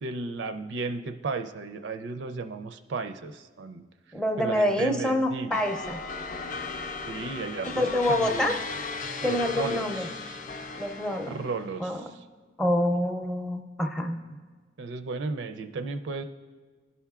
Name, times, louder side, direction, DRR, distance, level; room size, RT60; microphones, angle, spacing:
voice 1, 0.0-3.8 4.4-5.6 7.1-8.6 9.2-10.4 11.3-12.3 14.3-14.4 14.8-16.2, right 4 dB, 65° right, 8 dB, 0.4 m, -34 dB
voice 2, 4.1-6.0 7.8-8.5 9.2-10.1 10.8-11.3 11.8-12.0 12.6-14.2, left 1 dB, 5° left, 4 dB, 0.6 m, -26 dB
sound 1, 5.5-11.7, left 4 dB, 45° left, 0.5 m, -37 dB
16.5 x 5.6 x 2.4 m, 1.5 s
head